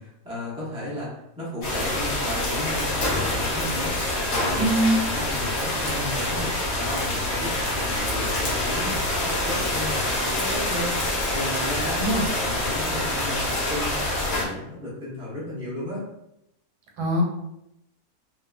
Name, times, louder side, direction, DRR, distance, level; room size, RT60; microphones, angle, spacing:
voice 1, 0.0-12.0 12.4-13.9 14.3-16.0, left 1 dB, 5° right, -7 dB, 0.4 m, -34 dB
sound 1, 1.6-14.4, left 1 dB, 55° left, 0.8 m, -26 dB
voice 2, 4.6-5.0 12.0-12.2 17.0-17.2, right 1 dB, 90° right, 0 dB, 1.2 m, -22 dB
2.7 x 2.3 x 2.2 m, 0.84 s
omnidirectional pair, 1.7 m